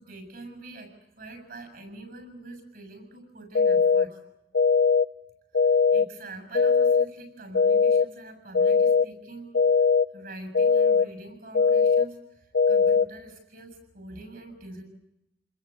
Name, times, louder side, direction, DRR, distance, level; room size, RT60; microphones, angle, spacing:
voice 1, 0.0-4.2 5.9-9.6 10.1-14.8, right 2 dB, 55° right, 9 dB, 7.3 m, -44 dB
sound 1, 3.5-4.0 4.5-5.0 5.5-6.0 6.5-7.0 7.5-8.0 8.5-9.0 9.5-10.0 10.5-11.0 11.5-12.0 12.5-13.0, left 5 dB, 65° left, 0.9 m, -20 dB
29.0 x 21.0 x 8.4 m, 0.87 s
head